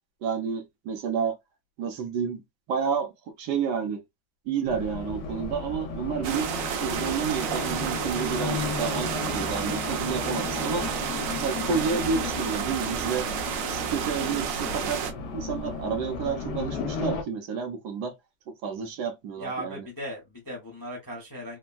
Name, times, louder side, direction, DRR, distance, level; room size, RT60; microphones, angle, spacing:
voice 1, 0.2-1.3 1.8-2.4 2.7-3.1 3.4-4.0 4.5-6.5 6.8-10.9 11.3-13.2 13.7-15.0 15.3-18.1 18.6-19.8, right 6 dB, 70° right, 1.3 m, -30 dB
Race car auto racing, 4.7-17.2, left 4 dB, 70° left, 1.2 m, -34 dB
sound 1, 6.2-15.1, right 9 dB, 90° right, 1.3 m, -31 dB
voice 2, 19.4-21.6, equal, 20° left, 0.5 m, -37 dB
3.4 x 2.2 x 2.2 m
omnidirectional pair, 1.9 m